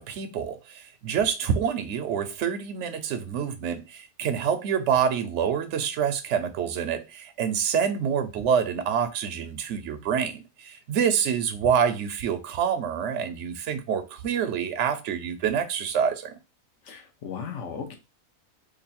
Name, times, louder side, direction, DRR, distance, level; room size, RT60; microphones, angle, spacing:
voice 1, 0.0-16.4, right 7 dB, 65° right, 0.8 m, -27 dB
voice 2, 16.9-18.0, left 6 dB, 60° left, 1.0 m, -36 dB
3.0 x 2.6 x 4.1 m
omnidirectional pair, 1.5 m